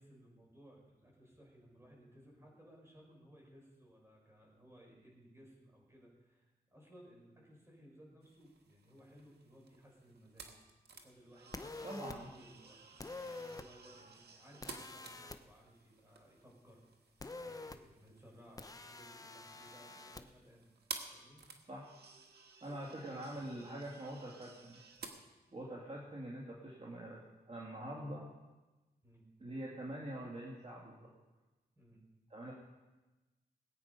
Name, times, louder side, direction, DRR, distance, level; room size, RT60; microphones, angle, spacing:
voice 1, 0.0-10.5 10.9-16.8 17.4-20.7 21.1-21.4 22.7-23.5 29.0-29.3 31.8-32.0, equal, 15° right, -2 dB, 5.4 m, -60 dB
sound 1, 8.2-25.1, right 4 dB, 75° right, 1.6 m, -54 dB
sound 2, 11.5-12.2 13.0-13.7 14.6-15.4 17.2-17.8 18.6-20.2, left 2 dB, 20° left, 0.7 m, -47 dB
voice 2, 11.8-12.3 21.7-21.9 22.6-24.8 25.5-28.3 29.4-31.1 32.3-32.5, right 1 dB, 40° right, -4 dB, 2.3 m, -45 dB
20.0 x 8.9 x 5.4 m, 1.1 s
wide cardioid pair, 95°, 17 cm